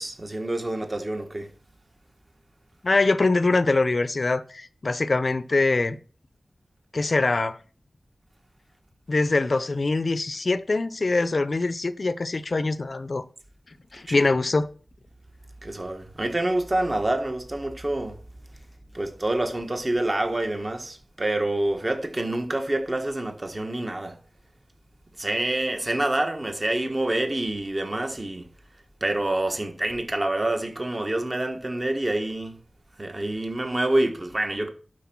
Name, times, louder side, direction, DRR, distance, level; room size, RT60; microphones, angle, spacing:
voice 1, 0.0-1.5 14.1-14.3 15.6-18.2 18.9-24.2 25.2-28.5 29.0-32.6 33.0-34.7, right 1 dB, 30° right, 1.5 m, -27 dB
voice 2, 2.8-6.0 6.9-7.6 9.1-13.2 13.9-14.7, left 3 dB, 50° left, 0.6 m, -23 dB
11.5 x 4.6 x 5.9 m
wide cardioid pair, 80°, 0 cm